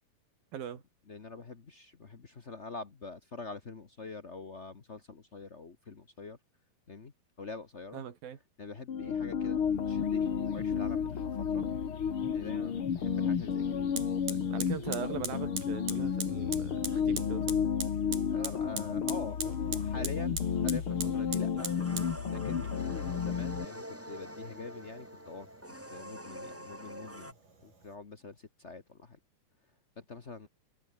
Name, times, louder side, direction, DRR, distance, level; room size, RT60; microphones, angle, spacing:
voice 1, 0.5-0.8 7.9-8.4 14.5-17.6, right 9 dB, 80° right, 4.2 m, -40 dB
voice 2, 1.1-6.4 6.9-7.1 7.4-8.0 8.6-11.7 12.3-14.4 18.3-19.4 19.6-21.7 22.3-25.5 25.9-27.3 27.6-29.2 30.1-30.5, left 4 dB, 75° left, 0.6 m, -45 dB
sound 1, 8.9-23.6, left 7 dB, 45° left, 2.5 m, -32 dB
Fire, 12.9-13.0 14.0-28.0, right 1 dB, 65° right, 9.4 m, -45 dB
sound 2, 21.6-27.3, equal, 5° right, 6.3 m, -45 dB
omnidirectional pair, 4.1 m